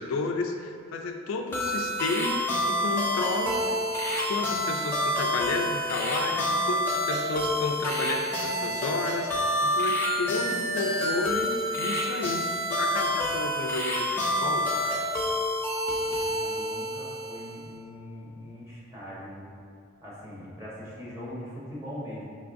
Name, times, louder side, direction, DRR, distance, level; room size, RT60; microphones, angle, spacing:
voice 1, 0.0-3.8 4.3-9.3 9.6-12.4 12.7-15.0, left 3 dB, 80° left, 4 dB, 0.3 m, -32 dB
sound 1, 1.5-17.7, equal, 10° left, 0.6 m, -28 dB
voice 2, 16.2-19.5 20.0-22.2, equal, 15° right, -9 dB, 1.1 m, -41 dB
5.2 x 3.2 x 2.5 m, 2.3 s
head